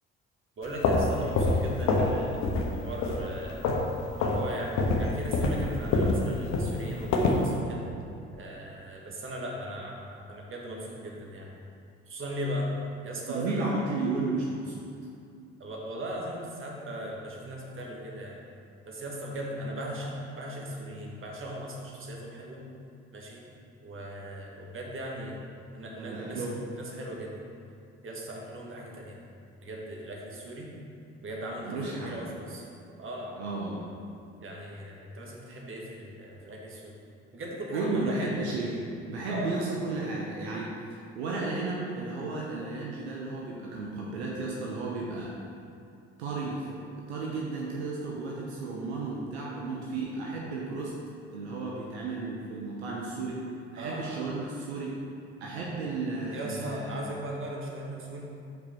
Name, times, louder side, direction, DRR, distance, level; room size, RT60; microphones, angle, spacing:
sound 1, 0.6-2.2 2.4-2.7 3.0-3.9 4.2-4.4 4.8-7.5, left 3 dB, 55° left, 0.9 m, -25 dB
voice 1, 0.6-2.4 2.7-3.6 4.2-4.7 5.0-7.9 8.3-11.5 12.1-12.7 13.0-13.7 15.6-18.4 18.8-22.6 23.1-23.5 23.8-25.4 25.7-26.4 26.7-27.3 28.0-29.2 29.6-30.7 31.2-32.7 33.0-33.3 34.4-37.0 37.3-38.4 39.3-39.6 53.8-54.1 56.3-58.2, equal, 40° right, -2 dB, 1.5 m, -38 dB
voice 2, 13.3-14.8 25.9-26.6 31.6-32.2 33.4-33.9 37.7-38.8 39.1-40.7 41.1-45.4 46.2-46.8 47.1-50.9 51.3-53.4 53.7-55.0 55.4-57.0, right 3 dB, 80° right, -3 dB, 0.8 m, -33 dB
5.8 x 4.9 x 4.4 m, 2.5 s
figure-of-eight pair, 50°, 33 cm